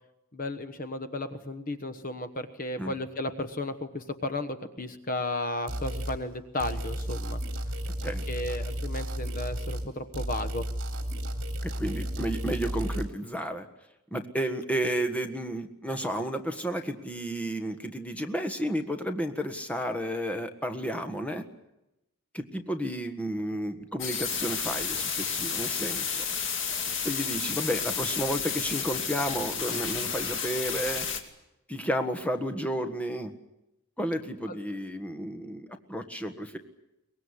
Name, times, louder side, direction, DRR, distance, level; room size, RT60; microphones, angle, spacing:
voice 1, 0.3-7.4 8.3-10.7 34.5-34.7, left 2 dB, 40° left, 10 dB, 1.2 m, -34 dB
sound 1, 5.7-6.2 6.6-9.9 10.1-13.1, equal, 55° right, 3.4 m, -33 dB
voice 2, 11.6-13.7 14.1-21.4 22.3-26.2 27.0-31.1 31.7-33.3 34.0-36.6, equal, 5° left, 6 dB, 1.6 m, -32 dB
sound 2, 24.0-31.2, left 6 dB, 55° left, 2.7 m, -31 dB
23.5 x 20.5 x 9.8 m, 0.91 s
head